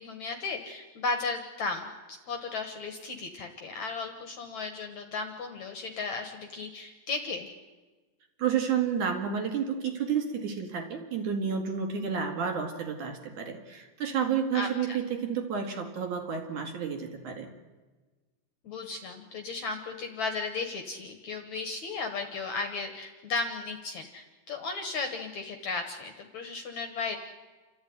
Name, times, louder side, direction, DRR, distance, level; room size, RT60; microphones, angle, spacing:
voice 1, 0.0-7.5 14.5-15.0 18.6-27.2, left 4 dB, 60° left, 6 dB, 2.2 m, -35 dB
voice 2, 8.4-17.5, right 7 dB, 55° right, 3 dB, 3.2 m, -30 dB
28.5 x 13.5 x 9.5 m, 1.3 s
omnidirectional pair, 4.7 m